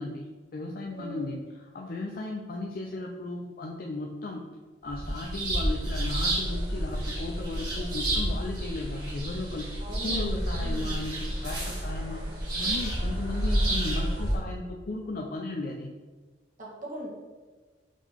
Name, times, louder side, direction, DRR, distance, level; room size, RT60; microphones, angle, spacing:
voice 1, 0.0-4.4 4.8-9.7 10.0-12.2 12.5-15.9, left 2 dB, 55° left, 0 dB, 0.5 m, -35 dB
voice 2, 0.9-1.3 9.8-11.0 16.6-17.1, right 1 dB, 45° right, -3 dB, 1.5 m, -40 dB
sound 1, 4.9-14.4, right 1 dB, 25° right, 1.9 m, -30 dB
5.1 x 3.7 x 5.0 m, 1.3 s
head